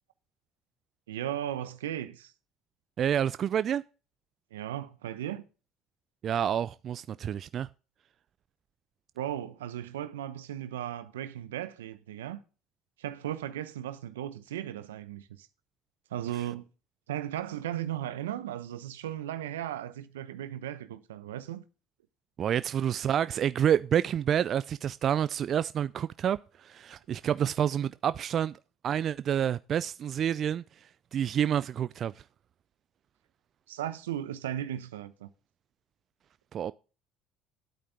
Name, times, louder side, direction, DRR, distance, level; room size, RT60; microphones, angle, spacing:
voice 1, 1.1-2.3 4.5-5.4 9.2-12.4 13.0-15.2 16.1-16.6 17.1-21.6 33.7-35.3, right 11 dB, 85° right, 0.9 m, -36 dB
voice 2, 3.0-3.8 6.2-7.7 16.3-16.4 22.4-28.6 28.8-30.6 31.1-32.1 36.5-36.7, right 9 dB, 50° right, 0.4 m, -28 dB
10.5 x 8.7 x 3.5 m
hypercardioid pair, 70°, 0 cm